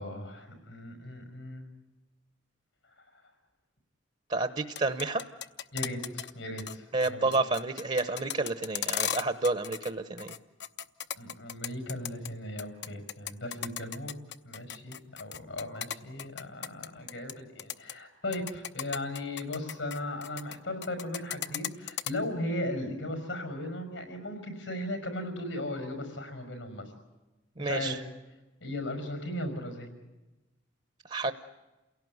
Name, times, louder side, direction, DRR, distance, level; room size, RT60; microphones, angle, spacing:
voice 1, 0.0-1.7 3.0-3.1 5.7-7.3 11.1-14.1 14.4-26.8 27.6-28.0 28.6-29.9, left 1 dB, 90° left, 7 dB, 5.6 m, -37 dB
voice 2, 4.3-5.2 6.9-10.4 27.6-28.0 31.0-31.3, right 3 dB, 35° right, 11 dB, 0.9 m, -30 dB
sound 1, 4.6-6.3 6.6-6.8 7.0-9.9 10.2-12.3 12.6-17.3 17.6-17.9 18.3-20.6 20.8-22.1, left 10 dB, 65° left, 0.8 m, -36 dB
28.5 x 17.5 x 9.5 m, 1.1 s
head